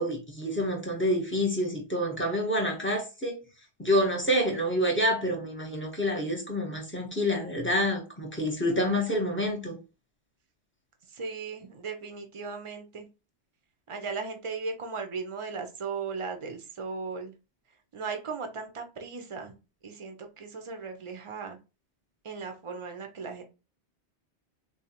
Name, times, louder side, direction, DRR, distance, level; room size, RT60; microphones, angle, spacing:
voice 1, 0.0-3.4 3.8-9.8, equal, 10° left, 0.8 m, -28 dB
voice 2, 8.7-9.3 11.1-13.1 13.9-17.3 17.9-19.5 19.8-21.6 22.2-23.4, right 4 dB, 35° right, 0.6 m, -37 dB
3.8 x 2.3 x 2.9 m
omnidirectional pair, 1.2 m